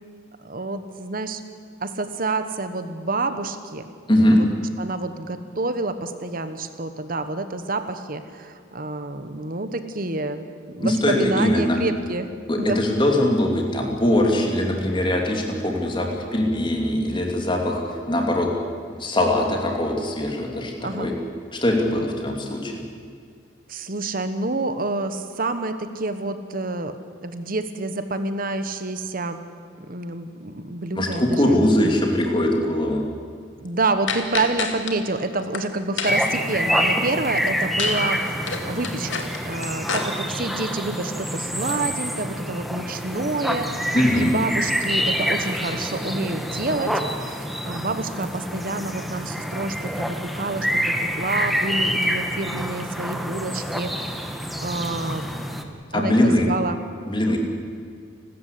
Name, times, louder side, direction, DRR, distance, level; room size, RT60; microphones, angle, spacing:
voice 1, 0.4-1.4 1.8-3.9 4.2-4.4 4.8-10.5 10.7-12.8 20.8-21.1 23.7-29.4 29.9-31.9 33.6-47.0 47.3-55.3 55.9-56.8, right 2 dB, 45° right, 9 dB, 1.3 m, -28 dB
voice 2, 4.1-4.4 10.8-11.8 12.5-18.5 19.0-21.1 21.5-22.7 31.0-33.0 43.9-44.3 55.9-56.5 57.1-57.4, left 1 dB, 25° left, 1 dB, 3.0 m, -21 dB
sound 1, 34.1-34.9 35.3-35.6 36.0-36.4 37.8-38.0 38.3-40.0, left 5 dB, 75° left, 2.4 m, -28 dB
sound 2, 36.0-55.6, equal, ahead, 1.4 m, -27 dB
29.5 x 13.5 x 8.5 m, 2.1 s
head